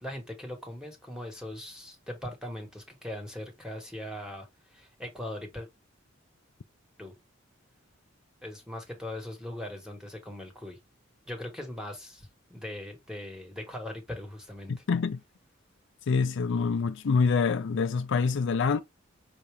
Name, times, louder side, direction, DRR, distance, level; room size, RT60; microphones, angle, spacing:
voice 1, 0.0-4.5 4.7-5.7 7.0-7.1 8.4-10.8 11.3-14.7, left 1 dB, 5° right, 1.4 m, -40 dB
voice 2, 14.7-15.2 16.1-18.8, left 5 dB, 65° left, 0.4 m, -26 dB
5.8 x 2.7 x 3.3 m
head